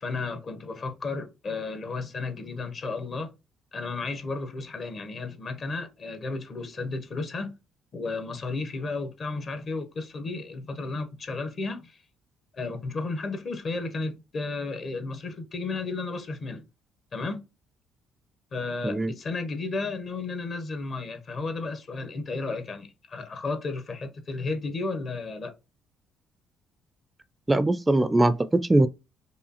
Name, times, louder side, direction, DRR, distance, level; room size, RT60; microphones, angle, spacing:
voice 1, 0.0-3.3 3.7-7.6 7.9-12.0 12.5-16.6 17.1-17.4 18.5-25.5, left 3 dB, 45° left, 0.8 m, -33 dB
voice 2, 27.5-28.9, right 2 dB, 20° right, 0.3 m, -21 dB
4.8 x 2.4 x 2.8 m
hypercardioid pair, 45°, 0 cm